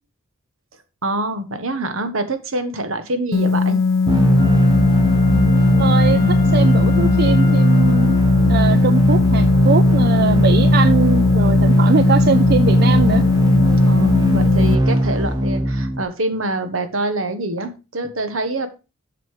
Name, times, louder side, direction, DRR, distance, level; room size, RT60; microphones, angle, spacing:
voice 1, 1.0-3.8 13.8-18.7, right 2 dB, 70° right, 9 dB, 1.4 m, -25 dB
sound 1, 3.3-14.7, left 4 dB, 70° left, 0.6 m, -18 dB
sound 2, 4.1-16.0, right 1 dB, 20° right, 1.3 m, -18 dB
Wind instrument woodwind instrument, 4.3-8.6 9.1-9.2, left 4 dB, 20° left, 2.0 m, -37 dB
voice 2, 5.8-8.2 8.4-13.2, right 5 dB, 45° right, 12 dB, 0.4 m, -21 dB
7.9 x 6.7 x 4.8 m, 0.30 s
head